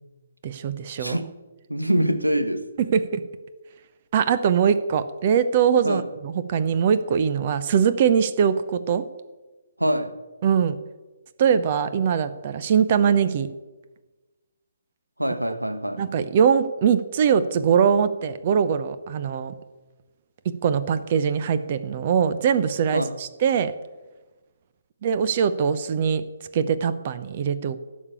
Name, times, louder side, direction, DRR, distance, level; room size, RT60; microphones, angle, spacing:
voice 1, 0.4-1.2 2.9-3.2 4.1-9.0 10.4-10.7 11.4-13.5 16.0-19.5 20.6-23.7 25.0-26.2 26.5-27.8, right 7 dB, 40° right, 0.8 m, -22 dB
voice 2, 1.7-2.6 5.8-6.0 9.8-10.1 15.2-16.0 22.9-23.1, right 1 dB, 90° right, 1.2 m, -24 dB
12.0 x 6.5 x 8.4 m
figure-of-eight pair, 135°, 0 cm